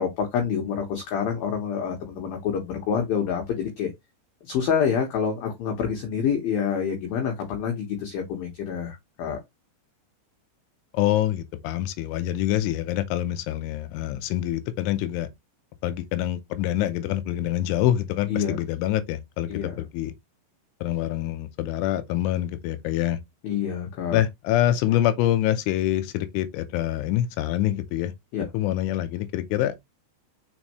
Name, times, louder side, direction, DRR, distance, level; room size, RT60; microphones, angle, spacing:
voice 1, 0.0-3.9 4.4-9.4 18.3-18.6 19.5-19.8 23.4-24.2 28.3-28.5, left 7 dB, 65° left, 2.7 m, -27 dB
voice 2, 10.9-15.3 15.8-20.1 20.8-23.2 24.1-28.1 28.4-29.7, left 13 dB, 90° left, 3.2 m, -25 dB
6.3 x 4.8 x 3.1 m
omnidirectional pair, 5.5 m